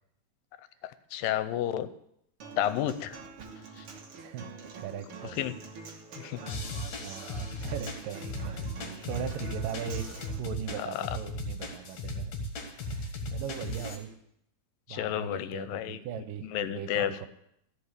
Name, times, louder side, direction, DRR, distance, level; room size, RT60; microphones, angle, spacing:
voice 1, 1.1-1.9 2.6-3.2 3.8-3.9 5.4-5.5 6.2-6.4 10.8-10.9 14.9-16.0 16.5-17.3, left 12 dB, 85° left, 13 dB, 2.3 m, -31 dB
Human voice / Acoustic guitar, 2.4-10.4, right 4 dB, 60° right, 1.5 m, -45 dB
voice 2, 4.2-4.5 4.8-5.6 7.0-8.7 9.0-10.1 10.3-12.4 12.7-14.2 14.9-17.3, right 9 dB, 80° right, 9 dB, 2.5 m, -39 dB
sound 1, 6.5-14.0, left 1 dB, 55° left, 2.5 m, -37 dB
14.0 x 5.3 x 8.1 m, 0.75 s
omnidirectional pair, 4.0 m